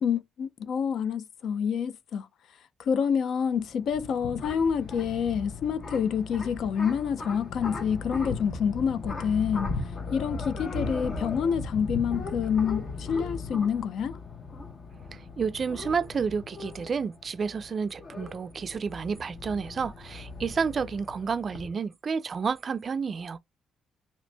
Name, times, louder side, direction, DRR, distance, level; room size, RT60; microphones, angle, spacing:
voice 1, 0.0-2.3 2.8-9.7 10.1-14.2, left 7 dB, 70° left, 0.4 m, -27 dB
sound 1, 3.5-21.7, left 3 dB, 45° left, 0.9 m, -38 dB
voice 2, 15.1-23.4, right 5 dB, 45° right, 0.3 m, -30 dB
2.8 x 2.6 x 3.2 m
cardioid pair, 90°, 0 cm